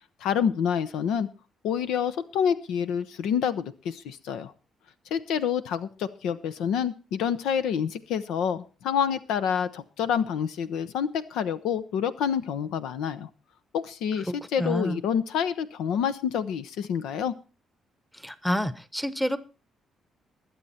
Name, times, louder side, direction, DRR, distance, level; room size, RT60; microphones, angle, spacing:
voice 1, 0.2-1.3 1.6-4.5 5.1-13.3 13.7-17.3, left 8 dB, 90° left, 13 dB, 0.9 m, -28 dB
voice 2, 14.3-15.0 18.1-19.4, equal, 5° left, 15 dB, 1.0 m, -29 dB
20.5 x 7.9 x 4.3 m, 0.34 s
cardioid pair, 90°, 0 cm